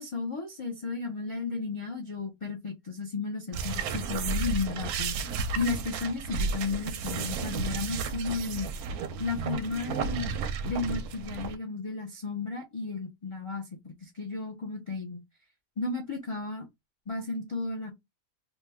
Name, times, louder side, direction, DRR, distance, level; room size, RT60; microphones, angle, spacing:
voice 1, 0.0-8.7 9.2-10.3 10.6-15.2 15.8-16.7 17.1-17.9, left 4 dB, 45° left, 0.3 m, -34 dB
sound 1, 3.5-11.6, right 5 dB, 90° right, 1.1 m, -33 dB
3.0 x 2.2 x 3.3 m
omnidirectional pair, 1.6 m